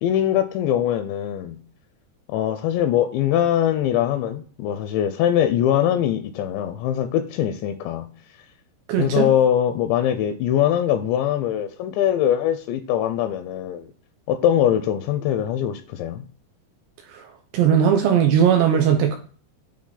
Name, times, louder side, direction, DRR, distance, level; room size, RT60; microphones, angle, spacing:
voice 1, 0.0-1.6 2.3-8.1 9.0-13.9 14.3-16.2, left 10 dB, 85° left, 2.7 m, -22 dB
voice 2, 8.9-9.3 17.1-19.2, right 8 dB, 80° right, 2.5 m, -19 dB
8.8 x 3.0 x 3.9 m
omnidirectional pair, 5.3 m